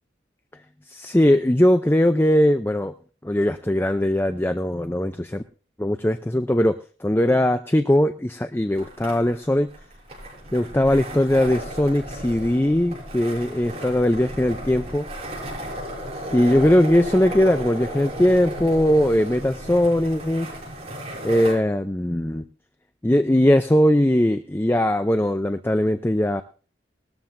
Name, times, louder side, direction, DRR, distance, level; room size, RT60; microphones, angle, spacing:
voice 1, 0.9-2.9 3.2-5.4 5.8-9.7 10.5-15.1 16.3-20.5 21.2-22.4 23.0-26.4, left 1 dB, 10° left, 8 dB, 0.5 m, -20 dB
sound 1, 8.8-21.5, equal, 35° right, 6.6 m, -34 dB
20.0 x 13.0 x 2.6 m, 0.39 s
head